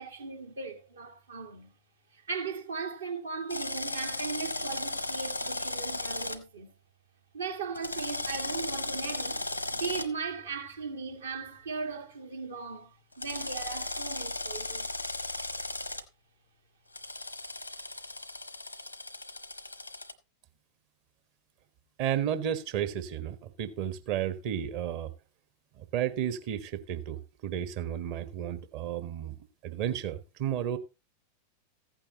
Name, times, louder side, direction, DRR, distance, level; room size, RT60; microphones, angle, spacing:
voice 1, 0.0-1.7 2.1-6.8 7.3-9.4 9.7-14.9, right 5 dB, 70° right, 1.9 m, -38 dB
Drill, 3.5-6.4 7.8-10.1 13.2-16.0 16.9-20.1, left 2 dB, 85° left, 1.0 m, -36 dB
voice 2, 22.0-25.1 25.9-29.3 29.6-30.8, right 10 dB, 45° right, 1.3 m, -32 dB
15.0 x 9.0 x 3.0 m
figure-of-eight pair, 90°, 0 cm